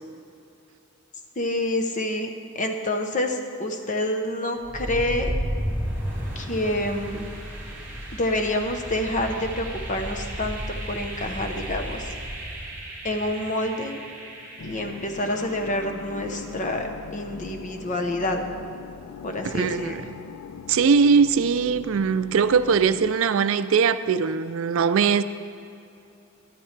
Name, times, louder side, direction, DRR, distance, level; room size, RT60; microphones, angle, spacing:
voice 1, 1.4-2.3 2.5-5.3 6.4-7.3 8.1-12.1 13.0-14.0 14.6-18.5 19.2-20.0, left 1 dB, 35° left, 5 dB, 0.8 m, -27 dB
sound 1, 4.6-16.5, equal, 10° right, 2.9 m, -34 dB
sound 2, 14.6-23.2, left 6 dB, 90° left, 0.4 m, -40 dB
voice 2, 19.4-20.0 20.7-25.2, right 5 dB, 75° right, 13 dB, 0.4 m, -21 dB
12.5 x 12.0 x 3.3 m, 2.7 s
head